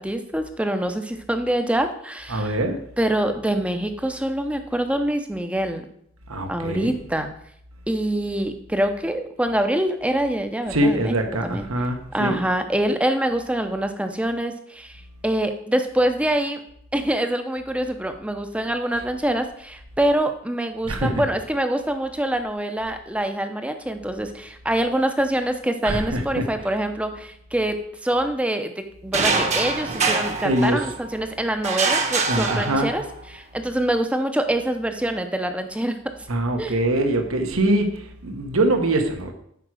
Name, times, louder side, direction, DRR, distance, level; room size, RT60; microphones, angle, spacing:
voice 1, 0.0-2.6 3.0-5.9 6.5-7.3 7.9-11.1 11.4-11.6 12.1-16.6 16.9-33.0 33.3-36.0 36.6-36.7, right 1 dB, 5° right, 7 dB, 0.6 m, -25 dB
voice 2, 2.3-2.8 6.3-6.9 10.7-12.4 20.8-21.2 25.8-26.5 30.4-30.9 32.3-32.9 36.3-39.3, right 1 dB, 80° right, 5 dB, 1.3 m, -23 dB
sound 1, 29.1-31.1 31.6-33.2, right 4 dB, 35° right, 1.0 m, -24 dB
9.0 x 4.8 x 6.2 m, 0.70 s
head